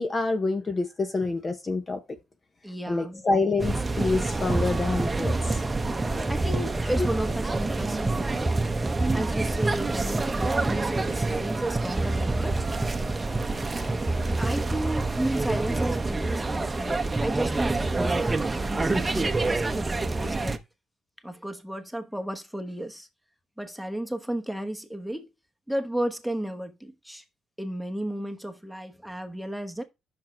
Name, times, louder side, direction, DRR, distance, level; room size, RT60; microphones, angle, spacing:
voice 1, 0.0-2.0 2.9-5.3 6.1-6.3, left 3 dB, 30° left, 0.9 m, -27 dB
voice 2, 2.6-3.2 6.1-8.5 9.1-12.5 14.4-20.6 21.2-23.1 23.6-25.3 25.7-27.2 27.6-29.8, right 1 dB, ahead, 1.1 m, -33 dB
sound 1, 3.6-20.6, right 2 dB, 20° right, 0.8 m, -27 dB
6.0 x 5.6 x 4.4 m
cardioid pair, 90°, 0 cm